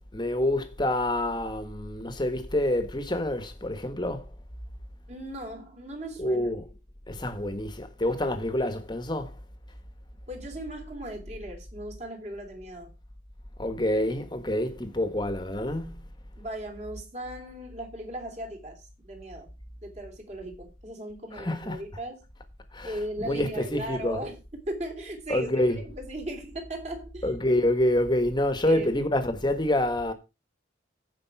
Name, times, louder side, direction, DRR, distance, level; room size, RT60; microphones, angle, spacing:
voice 1, 0.1-4.3 6.2-6.7 7.1-9.3 13.6-16.0 21.4-21.8 22.7-22.9 23.2-24.2 25.3-25.8 27.2-30.1, left 1 dB, 20° left, 1.4 m, -27 dB
voice 2, 5.1-6.5 10.3-12.9 14.6-14.8 16.4-19.5 19.8-22.2 22.8-27.3 28.6-28.9, right 1 dB, 35° right, 3.0 m, -38 dB
15.0 x 5.4 x 4.7 m
head